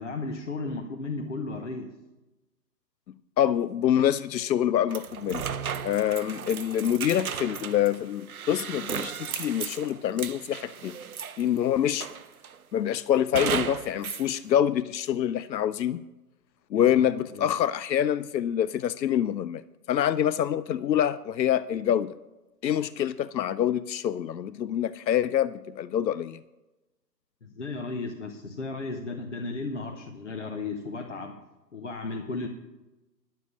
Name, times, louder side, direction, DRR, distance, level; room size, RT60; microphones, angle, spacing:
voice 1, 0.0-2.0 16.7-17.1 17.3-17.5 27.4-31.4 31.7-32.5, left 3 dB, 45° left, 3 dB, 0.9 m, -34 dB
voice 2, 3.4-5.5 5.8-11.0 11.4-12.1 12.7-16.0 16.7-19.6 19.9-22.1 22.6-26.4, left 10 dB, 85° left, 16 dB, 0.6 m, -26 dB
sound 1, 4.9-11.6 12.0-12.6 13.3-14.3, right 7 dB, 60° right, 0.6 m, -35 dB
11.5 x 7.6 x 7.1 m, 1.0 s
hypercardioid pair, 170°, 50 cm